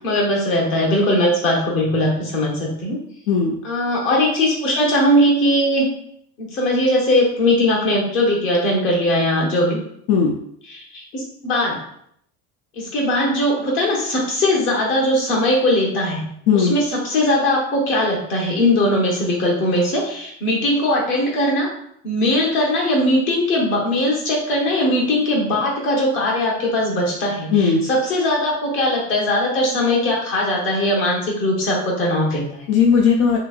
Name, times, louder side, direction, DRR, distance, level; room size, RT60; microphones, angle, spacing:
voice 1, 0.0-3.0 3.6-5.9 6.4-9.8 10.7-11.8 12.8-16.3 16.5-21.7 22.0-32.6, left 1 dB, 40° left, -2 dB, 1.0 m, -20 dB
voice 2, 3.3-3.6 10.1-10.3 16.5-16.7 27.5-27.8 32.7-33.4, left 6 dB, 55° left, 0 dB, 0.5 m, -16 dB
3.0 x 2.7 x 2.4 m, 0.71 s
cardioid pair, 160°, 31 cm